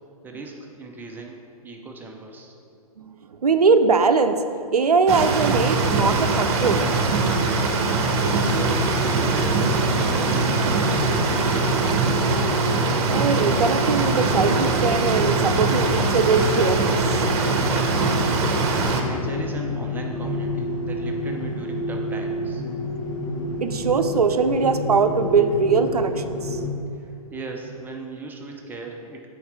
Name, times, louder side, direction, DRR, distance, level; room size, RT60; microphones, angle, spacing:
voice 1, 0.2-2.5 8.2-11.5 17.6-22.6 27.0-29.3, right 2 dB, 10° right, 1 dB, 0.6 m, -37 dB
voice 2, 3.4-4.4 4.7-6.9 13.1-17.0 23.6-26.1, right 4 dB, 80° right, 9 dB, 0.5 m, -21 dB
sound 1, 5.1-19.0, right 3 dB, 45° right, 0.9 m, -22 dB
sound 2, 8.1-26.7, left 1 dB, 55° left, 1.1 m, -29 dB
7.0 x 4.7 x 4.9 m, 2.4 s
figure-of-eight pair, 115°, 19 cm